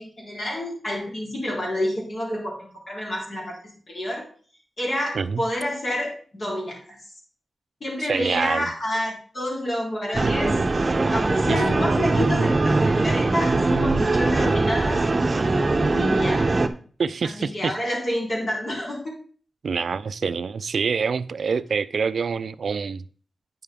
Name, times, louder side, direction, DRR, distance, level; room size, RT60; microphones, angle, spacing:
voice 1, 0.0-3.6 3.9-4.3 4.8-7.0 7.8-10.6 11.1-16.5 17.2-19.1, left 1 dB, 55° left, 3.8 m, -29 dB
voice 2, 8.0-8.7 11.5-11.6 17.0-17.7 19.6-23.0, right 5 dB, 75° right, 0.4 m, -26 dB
sound 1, 10.1-16.7, right 3 dB, 35° right, 0.7 m, -21 dB
9.3 x 6.6 x 3.6 m
wide cardioid pair, 85°, 0 cm